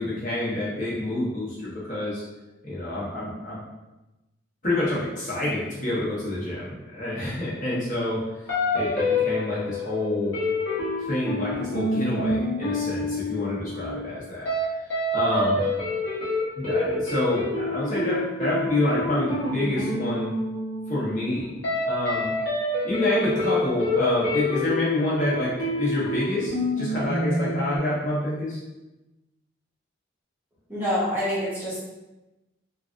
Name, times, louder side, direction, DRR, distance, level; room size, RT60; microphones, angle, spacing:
voice 1, 0.0-2.2 2.6-3.6 4.6-8.2 8.7-10.4 11.1-14.5 15.1-15.6 16.6-20.3 20.9-21.5 21.9-22.3 22.8-26.5 26.8-28.6, left 1 dB, 40° left, -8 dB, 1.1 m, -27 dB
sound 1, 8.5-14.1 14.5-14.6 14.9-27.8, left 2 dB, 70° left, 1.1 m, -27 dB
voice 2, 30.7-31.8, equal, 10° right, -10 dB, 0.9 m, -26 dB
3.3 x 2.4 x 2.5 m, 1.0 s
head